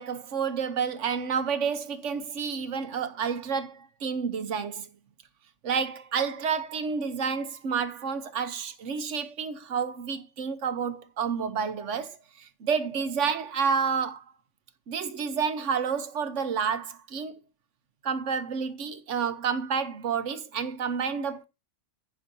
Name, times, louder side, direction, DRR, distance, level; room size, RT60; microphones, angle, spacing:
voice 1, 0.0-4.9 5.6-14.2 14.9-17.4 18.0-21.4, right 6 dB, 80° right, 1.3 m, -30 dB
15.0 x 5.7 x 2.8 m
omnidirectional pair, 1.2 m